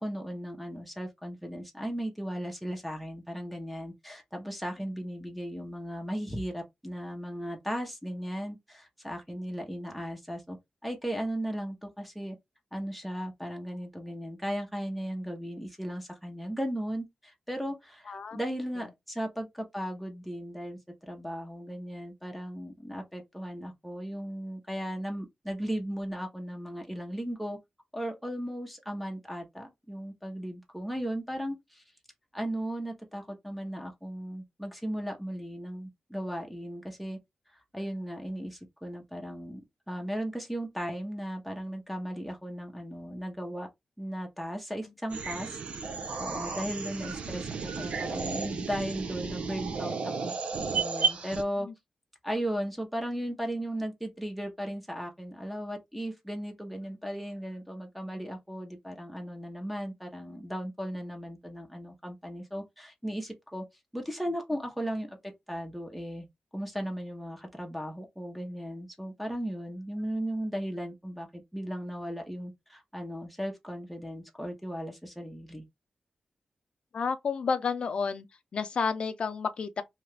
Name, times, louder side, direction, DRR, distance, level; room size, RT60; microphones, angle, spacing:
voice 1, 0.0-10.6 10.8-12.4 12.7-27.6 27.9-31.8 32.3-37.2 37.5-39.6 39.9-43.7 44.0-50.3 50.7-51.7 52.2-63.6 63.9-66.3 66.5-75.6, equal, ahead, 0.8 m, -36 dB
voice 2, 18.1-18.4 18.8-18.9 51.6-51.7 76.9-78.3 78.5-79.8, left 5 dB, 60° left, 0.5 m, -31 dB
sound 1, 45.1-51.4, right 5 dB, 80° right, 0.6 m, -33 dB
2.8 x 2.4 x 3.3 m
wide cardioid pair, 120°, 2 cm